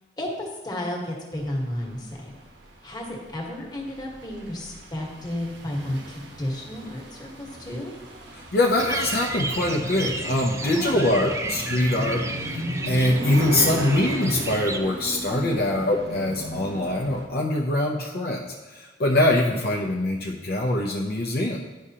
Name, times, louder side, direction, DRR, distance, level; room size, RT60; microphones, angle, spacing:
voice 1, 0.2-2.3 2.8-7.9 10.6-11.4, left 1 dB, 20° left, -1 dB, 1.3 m, -33 dB
sound 1, 1.4-17.3, equal, 65° right, 1.0 m, -36 dB
voice 2, 8.3-21.6, left 1 dB, 55° left, -1 dB, 0.6 m, -23 dB
sound 2, 8.8-14.8, right 3 dB, 15° right, 0.4 m, -33 dB
11.0 x 4.9 x 2.8 m, 1.2 s
head